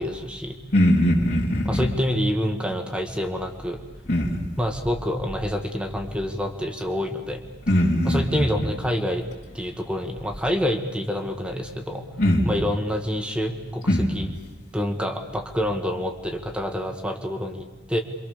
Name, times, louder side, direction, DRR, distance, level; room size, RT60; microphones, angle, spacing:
voice 1, 0.0-0.6 1.7-3.8 4.6-7.4 8.0-9.3 9.5-12.1 12.4-14.3 14.7-18.0, equal, 5° right, 5 dB, 2.2 m, -27 dB
voice 2, 0.7-1.9 4.1-4.4 7.7-8.4 12.2-12.4 13.9-14.1, equal, 50° left, -5 dB, 3.4 m, -20 dB
28.5 x 25.5 x 7.0 m, 1.1 s
head